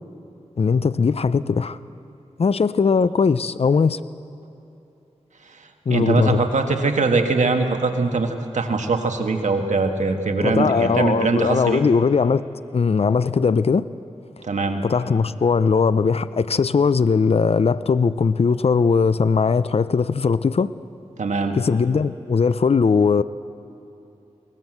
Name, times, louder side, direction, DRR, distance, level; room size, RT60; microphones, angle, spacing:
voice 1, 0.6-1.8 2.4-4.0 5.9-6.4 10.4-12.4 12.7-13.8 14.8-20.7 21.5-23.2, left 5 dB, 55° left, 15 dB, 0.6 m, -19 dB
voice 2, 5.5-11.8 14.4-14.8 21.2-21.6, right 3 dB, 80° right, 5 dB, 1.7 m, -22 dB
21.5 x 18.5 x 7.9 m, 2.9 s
wide cardioid pair, 60°, 12 cm